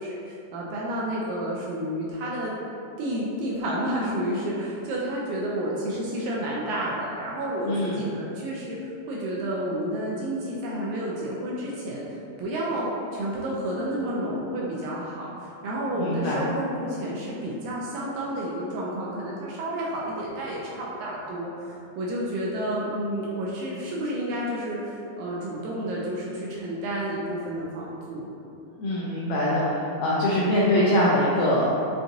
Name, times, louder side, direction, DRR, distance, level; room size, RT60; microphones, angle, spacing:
voice 1, 0.0-2.5 3.0-7.7 7.9-28.3, right 1 dB, 80° right, -5 dB, 1.8 m, -30 dB
voice 2, 7.6-8.0 15.9-16.5 28.7-31.7, left 1 dB, 85° left, -7 dB, 1.5 m, -23 dB
5.7 x 2.5 x 2.6 m, 2.7 s
omnidirectional pair, 3.7 m